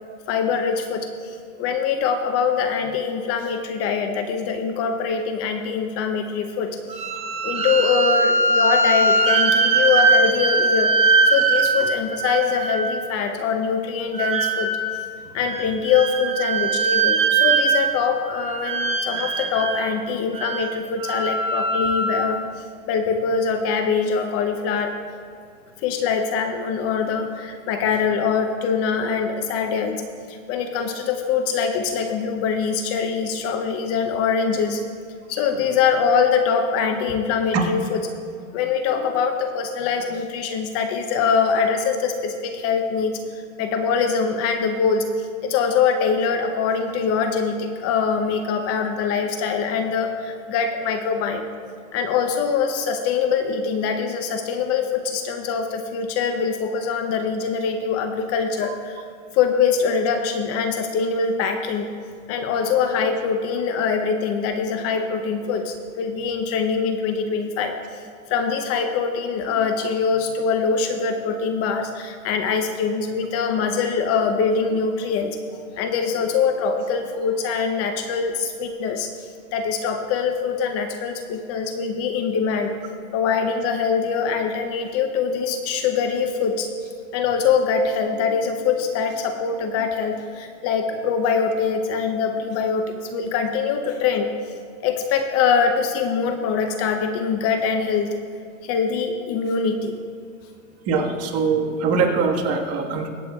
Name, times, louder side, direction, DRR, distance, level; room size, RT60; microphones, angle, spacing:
voice 1, 0.3-7.0 7.4-15.0 15.3-24.9 25.8-34.8 35.3-38.0 38.5-51.5 51.9-59.0 59.3-61.9 62.3-68.0 68.3-75.4 75.7-82.7 83.1-86.7 87.1-94.5 94.8-98.2 98.6-100.0, left 6 dB, 35° left, 6 dB, 0.7 m, -23 dB
sound 1, 6.9-13.1 14.1-15.0 15.5-18.1 18.3-19.8 20.3-22.4, right 3 dB, 15° right, 0.9 m, -21 dB
voice 2, 100.8-103.1, right 4 dB, 35° right, 1 dB, 1.6 m, -22 dB
23.5 x 8.1 x 2.4 m, 2.3 s
hypercardioid pair, 130°, 42 cm